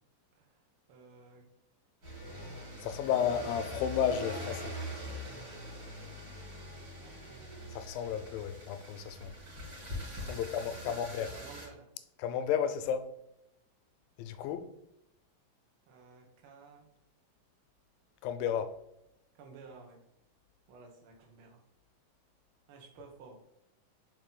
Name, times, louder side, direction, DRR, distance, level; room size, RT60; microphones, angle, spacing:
voice 1, 0.9-1.4 6.8-7.5 10.2-11.9 15.9-16.9 19.3-20.0 20.7-21.6 22.7-23.4, right 4 dB, 70° right, 1.2 m, -54 dB
sound 1, 2.0-11.7, equal, 40° right, 2.5 m, -43 dB
voice 2, 2.8-4.8 7.8-9.3 10.2-11.3 12.2-13.1 14.2-14.7 18.2-18.7, left 8 dB, 90° left, 2.4 m, -32 dB
5.4 x 4.8 x 3.9 m
omnidirectional pair, 4.0 m